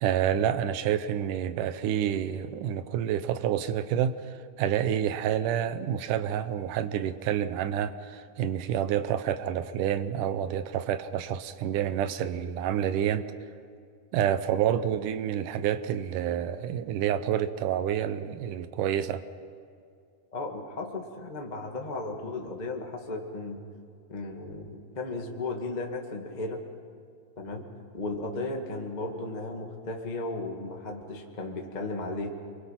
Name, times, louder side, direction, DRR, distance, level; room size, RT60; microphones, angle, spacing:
voice 1, 0.0-13.3 14.1-19.2, right 10 dB, 80° right, 11 dB, 1.8 m, -28 dB
voice 2, 20.3-23.6 24.1-26.6 27.4-27.6 27.9-32.3, left 2 dB, 25° left, 1 dB, 0.9 m, -35 dB
28.5 x 23.5 x 5.9 m, 2.3 s
omnidirectional pair, 4.6 m